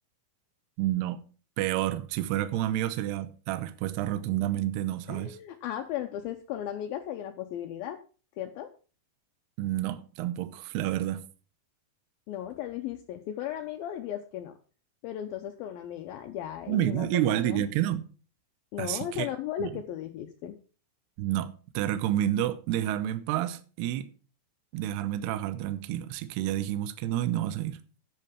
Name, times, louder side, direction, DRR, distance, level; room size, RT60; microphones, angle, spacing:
voice 1, 0.8-1.3 1.6-5.4 9.6-11.3 16.7-18.1 18.8-19.3 19.6-19.7 21.2-24.1 24.7-27.8, right 12 dB, 75° right, 2.6 m, -29 dB
voice 2, 5.1-8.0 8.4-8.7 12.3-14.5 15.0-17.6 18.7-20.6, left 11 dB, 85° left, 2.1 m, -36 dB
10.5 x 7.6 x 5.8 m
omnidirectional pair, 5.3 m